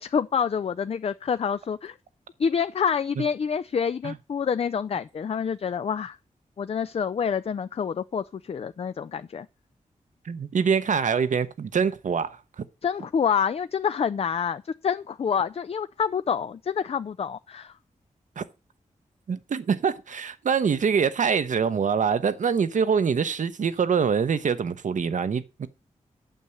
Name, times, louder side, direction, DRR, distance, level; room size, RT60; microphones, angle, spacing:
voice 1, 0.0-1.9 2.4-6.2 6.6-9.5 12.8-17.7, left 7 dB, 50° left, 0.4 m, -27 dB
voice 2, 10.2-12.6 18.4-18.5 19.3-25.7, right 6 dB, 70° right, 0.9 m, -24 dB
9.1 x 5.4 x 7.9 m
cardioid pair, 70°, 13 cm